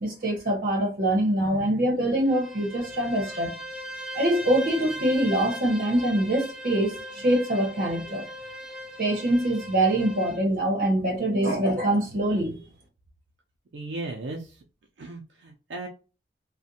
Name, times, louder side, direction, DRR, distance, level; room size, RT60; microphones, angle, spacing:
voice 1, 0.0-3.5 4.1-7.0 7.2-8.2 9.0-12.6, right 1 dB, 50° right, 0.9 m, -24 dB
Bowed string instrument, 2.1-10.4, right 1 dB, 5° right, 0.4 m, -39 dB
voice 2, 13.7-14.5 15.0-15.9, right 2 dB, 75° right, 0.4 m, -36 dB
2.5 x 2.1 x 2.6 m
head